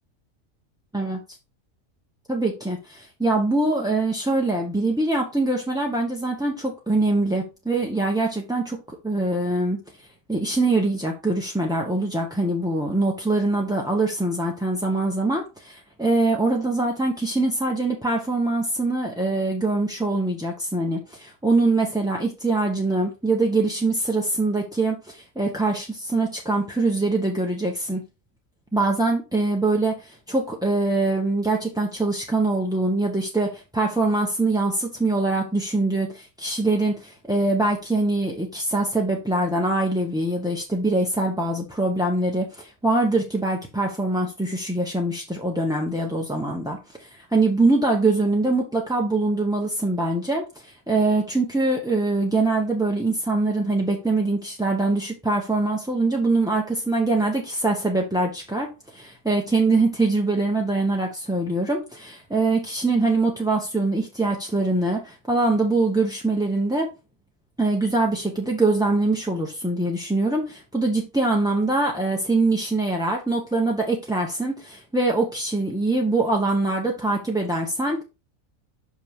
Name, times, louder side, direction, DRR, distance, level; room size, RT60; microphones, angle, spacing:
voice 1, 2.3-9.8 10.3-28.0 28.7-66.9 67.6-78.0, right 2 dB, 5° right, 0 dB, 0.6 m, -23 dB
6.1 x 5.1 x 3.5 m, 0.29 s
omnidirectional pair, 1.4 m